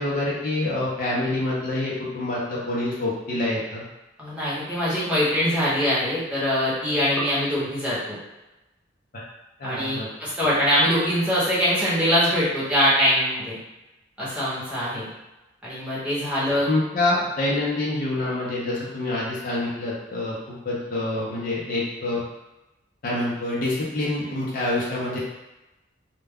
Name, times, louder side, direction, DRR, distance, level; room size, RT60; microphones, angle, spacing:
voice 1, 0.0-3.8 9.1-9.2 9.6-10.1 16.6-22.2 23.0-25.2, left 2 dB, 45° left, -5 dB, 0.6 m, -26 dB
voice 2, 4.2-8.2 9.6-13.6 14.2-15.1 15.6-16.7, equal, 5° right, -9 dB, 0.9 m, -23 dB
2.2 x 2.2 x 3.4 m, 1.0 s
head